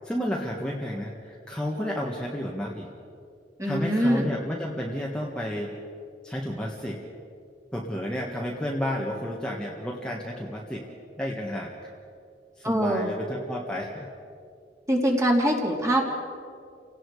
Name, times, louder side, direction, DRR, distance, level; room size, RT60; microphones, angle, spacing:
voice 1, 0.0-2.9 3.6-5.7 6.2-7.0 7.7-10.9 11.2-11.9 12.6-14.1, equal, 5° left, -3 dB, 1.6 m, -31 dB
voice 2, 3.6-4.3 12.6-13.1 14.9-16.1, equal, 20° right, 0 dB, 3.0 m, -23 dB
29.5 x 18.0 x 4.9 m, 2.4 s
head